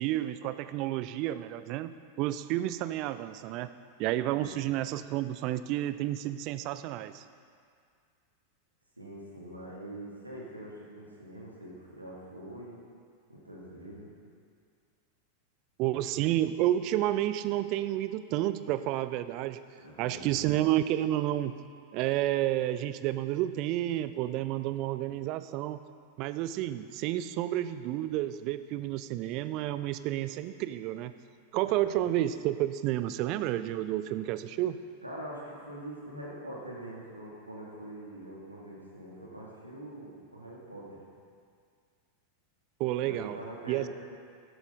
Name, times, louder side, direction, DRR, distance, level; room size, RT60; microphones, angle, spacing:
voice 1, 0.0-3.7 4.0-7.2 15.8-19.6 20.0-21.6 21.9-25.8 26.2-31.1 31.5-34.8 42.8-43.4 43.7-43.9, right 13 dB, 40° right, 13 dB, 0.4 m, -30 dB
voice 2, 9.0-12.8 13.3-14.1 19.7-20.5 31.9-32.0 35.0-41.0 43.0-43.9, right 1 dB, 85° right, -5 dB, 2.5 m, -44 dB
13.0 x 11.5 x 3.9 m, 2.2 s
figure-of-eight pair, 90°, 0 cm